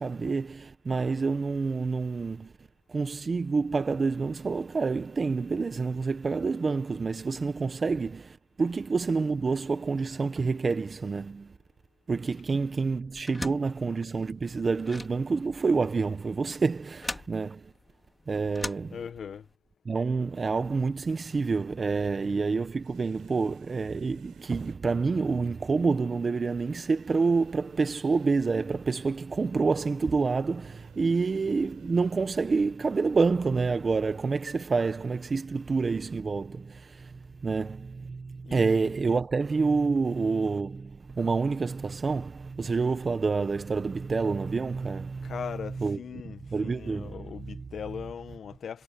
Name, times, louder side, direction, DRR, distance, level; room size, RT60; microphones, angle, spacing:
voice 1, 0.0-2.5 2.9-11.5 12.1-17.7 18.3-19.0 19.8-37.1 37.4-46.0 46.2-47.6, right 4 dB, 30° right, 1.2 m, -28 dB
sound 1, 13.1-19.5, left 2 dB, 15° left, 4.3 m, -41 dB
voice 2, 18.9-19.5 38.4-38.9 45.2-48.8, left 7 dB, 55° left, 1.5 m, -39 dB
sound 2, 22.8-24.8 26.5-28.9 30.6-32.2, right 11 dB, 75° right, 6.6 m, -56 dB
cardioid pair, 90°, 0 cm